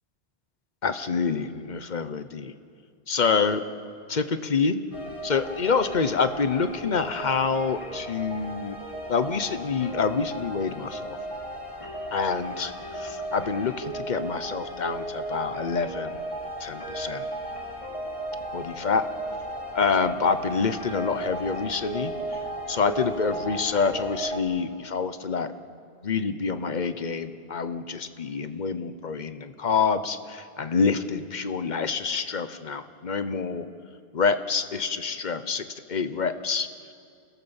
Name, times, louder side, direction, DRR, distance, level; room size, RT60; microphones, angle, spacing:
voice 1, 0.8-2.5 3.1-3.6 4.1-4.8 5.2-8.8 9.1-11.2 12.1-16.2 16.6-17.3 18.5-19.0 19.7-22.4 22.7-25.5 26.0-33.7 34.1-36.7, left 5 dB, 45° left, 11 dB, 1.0 m, -27 dB
sound 1, 4.9-24.4, right 1 dB, 30° left, 2.8 m, -35 dB
29.5 x 16.5 x 7.2 m, 2.3 s
omnidirectional pair, 1.1 m